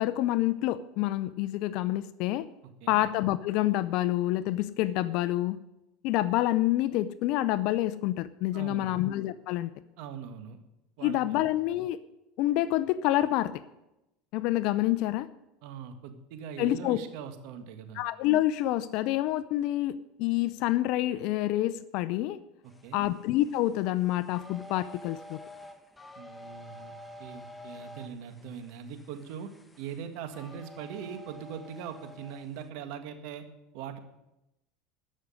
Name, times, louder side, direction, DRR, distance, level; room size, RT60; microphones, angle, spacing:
voice 1, 0.0-2.5 2.9-5.6 6.0-9.7 11.0-12.0 12.4-13.6 14.3-15.3 16.6-17.0 18.0-22.4 22.9-25.4, left 15 dB, 65° left, 15 dB, 0.5 m, -27 dB
voice 2, 8.5-9.0 10.0-10.6 11.0-11.5 15.6-18.0 22.6-23.1 26.2-29.5 29.8-33.5 33.7-34.0, right 7 dB, 70° right, 8 dB, 1.7 m, -41 dB
sound 1, 22.6-32.7, left 1 dB, 10° left, 1.1 m, -49 dB
13.5 x 6.4 x 9.7 m, 0.91 s
supercardioid pair, 110°, 0 cm